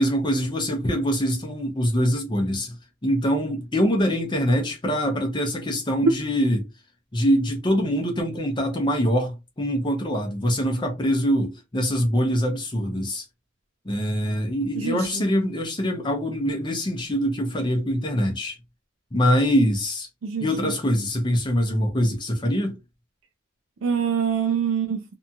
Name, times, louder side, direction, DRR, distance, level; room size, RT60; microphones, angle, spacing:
voice 1, 0.0-2.8 3.0-6.6 7.1-13.2 13.8-18.5 19.1-20.1 20.4-22.8, equal, 25° left, 0.6 m, -24 dB
voice 2, 14.7-15.2 20.2-20.7 23.8-25.0, right 5 dB, 70° right, 0.4 m, -24 dB
2.7 x 2.2 x 2.7 m
head